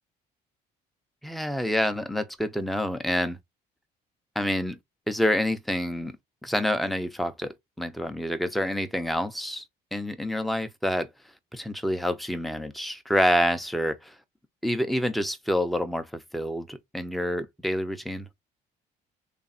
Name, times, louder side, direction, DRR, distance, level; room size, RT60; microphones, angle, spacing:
voice 1, 1.2-3.4 4.4-4.8 5.1-6.2 6.4-9.6 9.9-11.1 11.5-14.1 14.6-18.3, equal, ahead, 0.6 m, -27 dB
3.3 x 2.5 x 4.1 m
cardioid pair, 110°, 17 cm